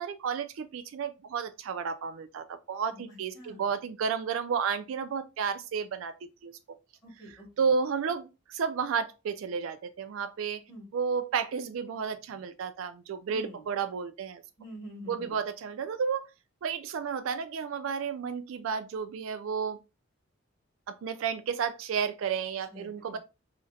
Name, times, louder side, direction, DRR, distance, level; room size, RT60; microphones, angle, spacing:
voice 1, 0.0-6.5 7.6-10.6 10.9-14.4 15.1-16.2 16.6-19.8 20.9-23.2, right 6 dB, 75° right, 0.3 m, -32 dB
voice 2, 2.9-3.7 7.0-7.7 10.7-10.9 13.3-13.7 14.6-15.4 22.7-23.2, equal, 20° left, 1.4 m, -47 dB
3.9 x 2.1 x 2.4 m
head